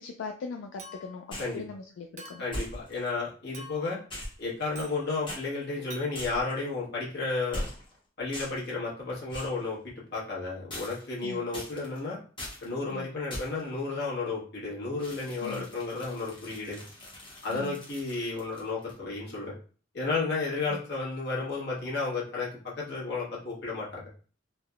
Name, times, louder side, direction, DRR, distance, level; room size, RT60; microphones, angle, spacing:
voice 1, 0.0-2.4 11.2-11.5 12.9-13.1 15.4-15.7 17.5-17.8 20.7-20.8, left 4 dB, 80° left, 4 dB, 0.3 m, -40 dB
Chink clink, 0.8-1.3 2.2-2.6 3.5-4.0 4.7-5.0 5.9-6.1, right 1 dB, 40° right, 0.4 m, -46 dB
sound 1, 1.3-1.6 2.5-3.1 4.1-4.9 5.3-5.4 6.1-6.6 7.5-8.0 8.3-8.7 9.3-9.6 10.7-11.2 11.5-12.0 12.4-12.7 13.3-13.7 15.0-19.0, left 1 dB, 25° left, 0.9 m, -41 dB
voice 2, 2.4-4.0 4.4-7.6 8.2-12.2 12.6-16.8 17.4-19.5 19.9-24.1, left 3 dB, 60° left, -5 dB, 1.1 m, -32 dB
3.2 x 2.1 x 2.3 m, 0.41 s
head